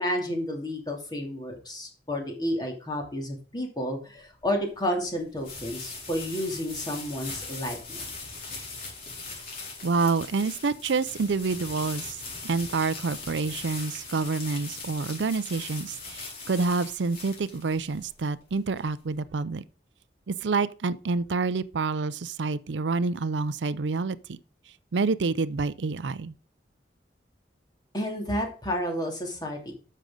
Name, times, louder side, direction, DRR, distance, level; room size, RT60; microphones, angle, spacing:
voice 1, 0.0-8.0 27.9-29.7, equal, 25° left, 2.7 m, -31 dB
sound 1, 4.3-19.1, left 3 dB, 55° left, 4.6 m, -40 dB
voice 2, 9.8-12.2 12.4-19.6 20.3-24.4 24.9-26.3, right 4 dB, 90° right, 0.5 m, -28 dB
9.9 x 6.6 x 3.7 m
head